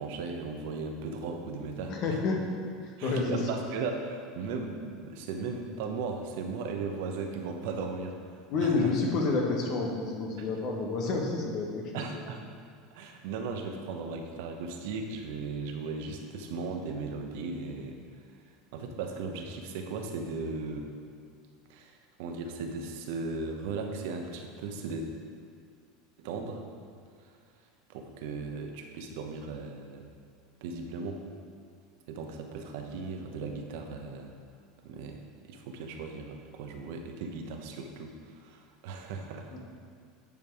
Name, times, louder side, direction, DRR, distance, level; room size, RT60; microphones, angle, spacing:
voice 1, 0.0-2.2 3.0-8.9 10.4-10.5 11.9-12.4 12.9-18.0 18.7-20.9 21.7-25.1 26.2-26.6 27.2-27.3 27.9-30.0 30.6-31.2 32.1-34.3 34.8-35.2 35.5-39.5, right 4 dB, 70° right, 4 dB, 1.0 m, -37 dB
voice 2, 1.9-2.5 2.8-3.4 8.5-12.0 39.5-39.6, left 3 dB, 55° left, 0 dB, 1.6 m, -29 dB
9.4 x 5.2 x 4.9 m, 2.1 s
hypercardioid pair, 90°, 0 cm